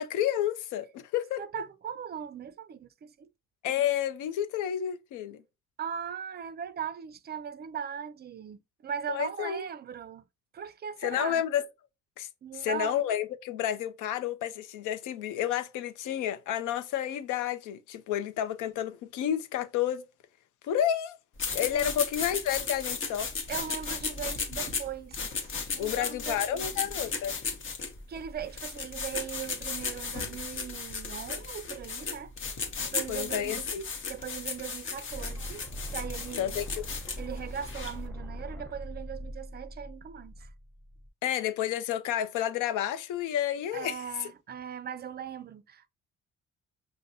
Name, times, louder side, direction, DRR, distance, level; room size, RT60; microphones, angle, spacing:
voice 1, 0.0-1.4 3.6-5.4 9.1-9.6 11.0-11.6 12.2-12.3 12.5-20.0 20.6-21.2 21.5-23.3 25.8-27.4 33.1-33.8 36.4-36.8 41.2-44.3, left 10 dB, 90° left, 0.5 m, -30 dB
voice 2, 1.4-3.3 5.8-10.2 10.5-11.4 12.4-13.0 21.7-21.9 23.5-25.3 25.7-26.8 28.1-32.3 32.8-33.7 34.1-36.6 37.2-40.5 43.7-45.9, right 8 dB, 35° right, 0.4 m, -39 dB
sound 1, 21.4-38.1, left 4 dB, 40° left, 0.9 m, -35 dB
sound 2, 35.1-41.1, equal, 5° left, 0.8 m, -41 dB
5.2 x 2.1 x 2.6 m
cardioid pair, 90°, 30 cm